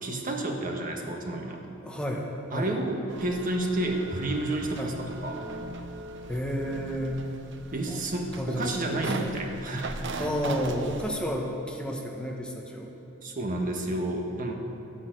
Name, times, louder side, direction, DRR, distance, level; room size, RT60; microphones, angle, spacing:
voice 1, 0.0-1.7 2.5-5.5 7.7-10.3 13.2-14.5, right 1 dB, 40° right, 2 dB, 1.4 m, -30 dB
voice 2, 1.8-2.7 4.8-4.9 6.3-7.2 7.9-8.0 8.4-9.4 10.2-12.9, equal, 5° left, 0 dB, 1.2 m, -31 dB
sound 1, 3.1-11.1, right 2 dB, 60° right, 0.9 m, -39 dB
13.0 x 10.5 x 7.8 m, 2.8 s
head